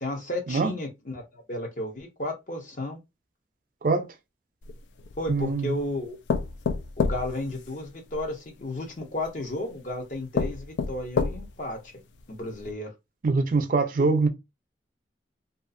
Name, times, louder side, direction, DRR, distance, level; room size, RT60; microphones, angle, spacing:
voice 1, 0.0-3.0 5.2-6.2 7.0-11.8 12.3-12.9, left 1 dB, 50° left, 0.7 m, -33 dB
sound 1, 4.6-5.5 6.3-8.2 9.2-9.3 9.9-10.0 10.3-11.7 12.2-12.3 12.6-12.7, left 5 dB, 85° left, 0.3 m, -28 dB
voice 2, 5.3-5.7 13.2-14.3, right 3 dB, 50° right, 0.4 m, -23 dB
2.6 x 2.4 x 2.5 m
head